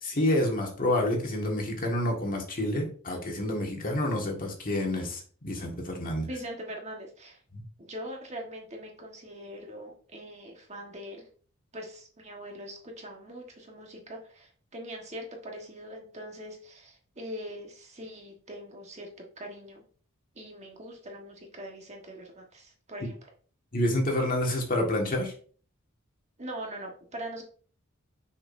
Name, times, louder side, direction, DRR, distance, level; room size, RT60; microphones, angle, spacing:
voice 1, 0.0-6.2 7.5-7.6 23.7-25.3, left 1 dB, 40° left, 1 dB, 1.7 m, -28 dB
voice 2, 6.2-7.4 7.8-11.3 11.7-19.1 19.4-19.8 20.3-23.2 26.4-27.4, equal, 30° right, 1 dB, 1.4 m, -42 dB
6.3 x 6.0 x 2.6 m, 0.42 s
head